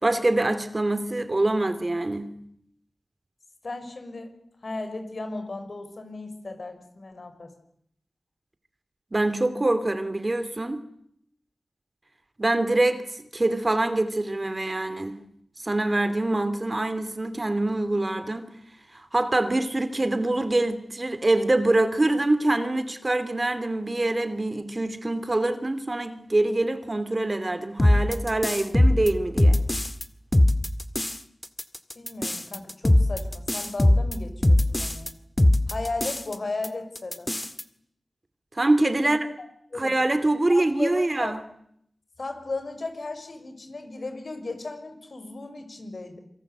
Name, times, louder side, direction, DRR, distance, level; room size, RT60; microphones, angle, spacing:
voice 1, 0.0-2.3 9.1-10.8 12.4-15.1 15.6-18.5 18.9-29.6 38.5-39.3 39.8-41.4, right 2 dB, 35° right, 2.7 m, -25 dB
voice 2, 3.6-4.3 4.6-7.5 31.9-35.1 35.7-37.3 39.0-39.1 39.4-39.5 39.7-40.0 40.5-41.3 42.2-46.2, left 3 dB, 60° left, 6.0 m, -35 dB
sound 1, 27.8-30.0 30.3-31.2 31.4-35.1 35.4-36.3 36.6-36.7 36.9-37.6, left 1 dB, 20° left, 1.9 m, -21 dB
26.5 x 24.5 x 8.2 m
wide cardioid pair, 70°, 0 cm